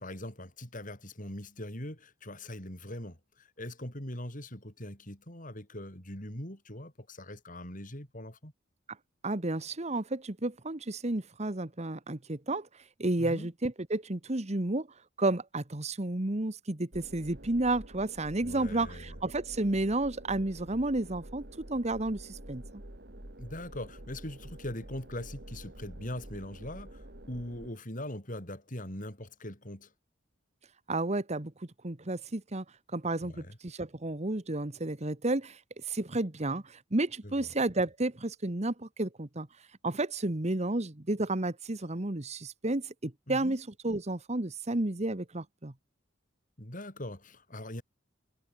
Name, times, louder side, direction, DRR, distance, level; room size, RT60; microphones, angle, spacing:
voice 1, 0.0-8.5 13.2-13.5 18.4-19.2 23.4-29.9 33.2-33.6 37.2-37.5 43.3-43.6 46.6-47.8, left 1 dB, 40° left, 7.2 m, -41 dB
voice 2, 9.2-12.7 13.0-14.9 15.2-22.8 30.9-32.6 32.9-35.6 35.9-39.5 39.8-45.7, right 2 dB, 35° right, 1.3 m, -32 dB
sound 1, 16.9-27.7, right 1 dB, 55° right, 3.2 m, -48 dB
head